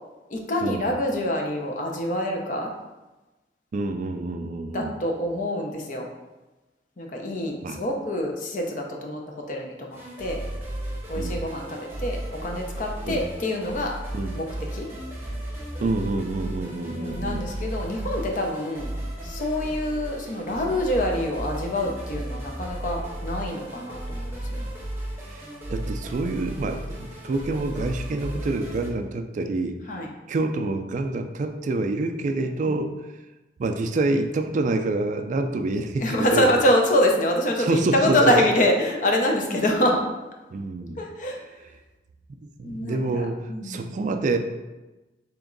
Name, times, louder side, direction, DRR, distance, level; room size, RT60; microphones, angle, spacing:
voice 1, 0.3-2.7 4.7-6.1 7.0-9.2 9.5-10.4 11.1-13.9 14.3-14.9 16.7-18.9 19.2-24.7 29.9-30.1 32.6-32.7 36.0-40.0 41.0-41.4 42.6-43.9, left 1 dB, 45° left, 1 dB, 0.6 m, -25 dB
voice 2, 3.7-4.9 7.6-7.8 11.2-11.4 13.1-13.2 14.1-14.3 15.8-17.5 25.2-29.8 30.3-32.9 33.6-36.5 37.6-38.3 40.5-41.0 42.6-44.4, right 2 dB, 45° right, 6 dB, 0.3 m, -27 dB
sound 1, 9.9-28.9, right 1 dB, 15° right, 0.8 m, -34 dB
3.4 x 3.0 x 3.8 m, 1.1 s
head